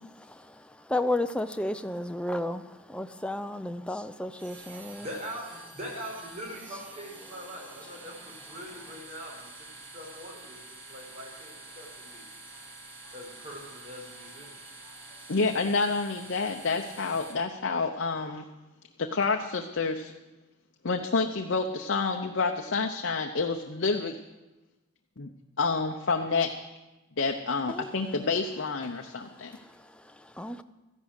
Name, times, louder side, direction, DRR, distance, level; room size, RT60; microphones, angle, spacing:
voice 1, 0.2-5.1 27.7-27.9 29.2-30.6, left 1 dB, 5° left, 8 dB, 0.4 m, -33 dB
sound 1, 4.4-17.3, right 2 dB, 55° right, 2.9 m, -48 dB
voice 2, 4.7-12.7 13.0-15.0, equal, 35° right, -1 dB, 4.1 m, -43 dB
voice 3, 15.3-18.4 19.0-20.1 20.8-24.2 25.2-25.3 25.6-26.5 27.2-29.5, left 4 dB, 55° left, 4 dB, 0.7 m, -28 dB
13.5 x 11.0 x 6.4 m, 1.1 s
head